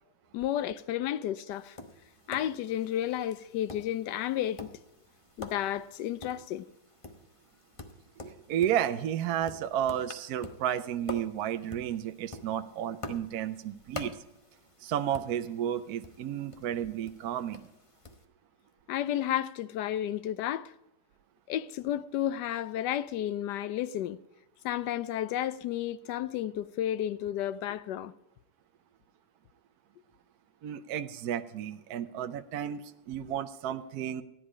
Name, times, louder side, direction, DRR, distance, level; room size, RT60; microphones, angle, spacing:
voice 1, 0.3-1.8 2.3-4.7 5.4-6.7 18.9-20.7 21.5-24.2 24.6-28.1, left 11 dB, 75° left, 1.1 m, -32 dB
Tap, 1.5-18.3, left 2 dB, 25° left, 0.7 m, -47 dB
voice 2, 8.2-14.1 14.8-17.7 30.6-34.2, right 10 dB, 65° right, 1.0 m, -32 dB
14.0 x 10.0 x 4.9 m
omnidirectional pair, 2.0 m